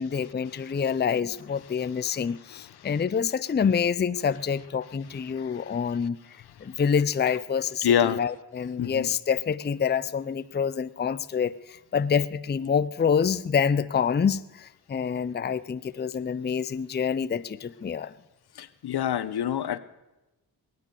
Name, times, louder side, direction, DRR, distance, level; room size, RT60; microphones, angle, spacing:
voice 1, 0.0-6.2 6.6-18.1, left 7 dB, 25° left, 0.5 m, -27 dB
voice 2, 2.5-2.9 5.3-5.8 7.8-8.2 8.8-9.1 18.5-19.8, left 9 dB, 75° left, 0.9 m, -27 dB
21.5 x 9.7 x 6.8 m
cardioid pair, 70°, 39 cm